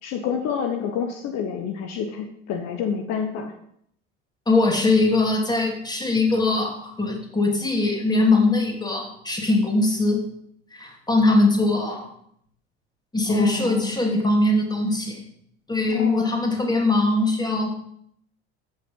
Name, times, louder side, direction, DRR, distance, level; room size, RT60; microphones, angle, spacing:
voice 1, 0.0-3.5 13.3-13.9 15.9-16.3, left 7 dB, 55° left, 5 dB, 1.2 m, -28 dB
voice 2, 4.5-10.2 10.7-12.1 13.1-15.2 15.7-17.7, left 2 dB, 15° left, 2 dB, 2.9 m, -21 dB
14.0 x 5.7 x 5.5 m, 0.69 s
hypercardioid pair, 70°, 31 cm